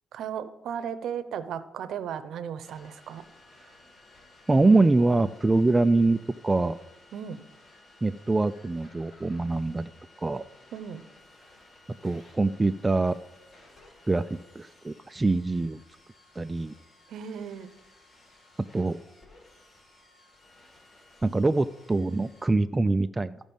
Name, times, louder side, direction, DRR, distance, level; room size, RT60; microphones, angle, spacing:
voice 1, 0.1-3.2 7.1-7.4 10.7-11.0 17.1-17.7, right 8 dB, 75° right, 12 dB, 0.8 m, -35 dB
sound 1, 2.6-22.5, left 2 dB, 45° left, 4.5 m, -56 dB
voice 2, 4.5-6.2 6.4-6.8 8.0-9.9 10.2-10.4 12.0-13.2 14.1-14.2 14.6-15.8 16.4-16.7 18.7-19.0 21.2-23.4, right 3 dB, 20° right, 10 dB, 0.4 m, -24 dB
14.5 x 5.2 x 5.4 m, 0.94 s
cardioid pair, 90°, 0 cm